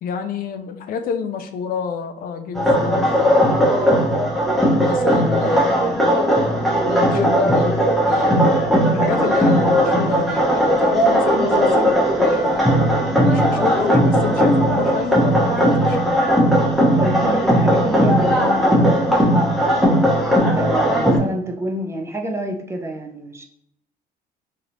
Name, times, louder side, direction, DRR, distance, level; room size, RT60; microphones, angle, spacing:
voice 1, 0.0-3.7 4.7-6.2 6.9-12.8 13.3-16.3, left 6 dB, 60° left, 7 dB, 0.4 m, -29 dB
sound 1, 2.6-21.2, equal, ahead, 0.8 m, -17 dB
Wind instrument woodwind instrument, 11.2-16.7, right 5 dB, 65° right, 0.6 m, -35 dB
voice 2, 17.0-19.6 20.6-23.4, right 1 dB, 15° right, 3 dB, 0.4 m, -28 dB
3.2 x 2.8 x 2.6 m, 0.73 s
cardioid pair, 110°, 17 cm